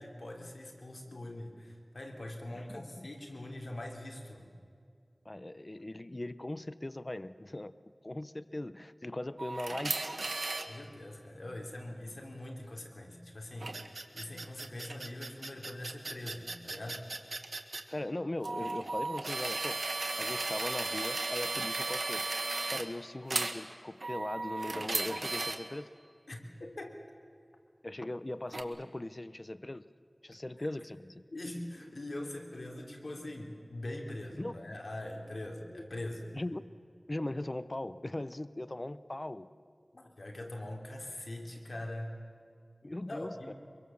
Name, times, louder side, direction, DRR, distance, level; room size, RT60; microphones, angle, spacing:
voice 1, 0.0-4.5 10.7-17.0 26.3-27.0 30.6-30.7 31.3-36.3 39.9-42.1 43.1-43.5, left 1 dB, 85° left, 2 dB, 3.1 m, -43 dB
voice 2, 2.5-3.1 5.2-7.7 8.0-10.2 17.9-19.9 20.2-22.3 22.7-25.9 27.8-29.8 30.2-31.2 34.4-34.8 35.7-35.8 36.3-36.6 37.1-39.5 42.8-43.5, left 1 dB, 40° left, 14 dB, 0.7 m, -39 dB
sound 1, 9.4-10.7 13.6-17.8 18.4-22.8 23.3-23.5 24.0-25.6 28.5-28.6, right 2 dB, 85° right, 1.4 m, -35 dB
23.5 x 23.0 x 7.1 m, 2.2 s
wide cardioid pair, 45°, 0 cm